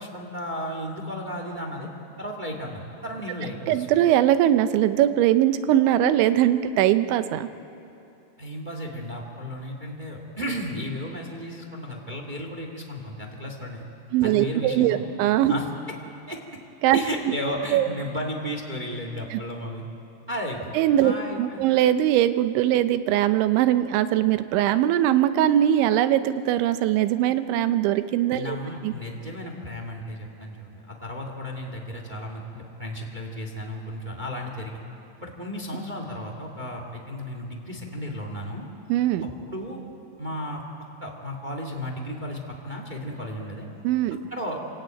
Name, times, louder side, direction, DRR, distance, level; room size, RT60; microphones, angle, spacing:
voice 1, 0.0-1.9 2.2-3.9 8.4-13.9 14.2-15.0 15.5-15.6 16.3-16.4 16.9-19.8 20.3-20.7 21.0-21.7 28.3-34.8 35.2-38.7 39.2-39.8 40.2-40.6 41.0-43.7 44.3-44.6, equal, 45° right, 2 dB, 0.5 m, -34 dB
voice 2, 3.7-7.5 14.1-15.5 16.8-17.0 17.7-17.9 19.3-19.4 20.8-28.6 28.8-28.9 38.9-39.3 43.8-44.2, right 12 dB, 80° right, 11 dB, 3.2 m, -21 dB
28.0 x 17.0 x 9.2 m, 2.8 s
omnidirectional pair, 5.4 m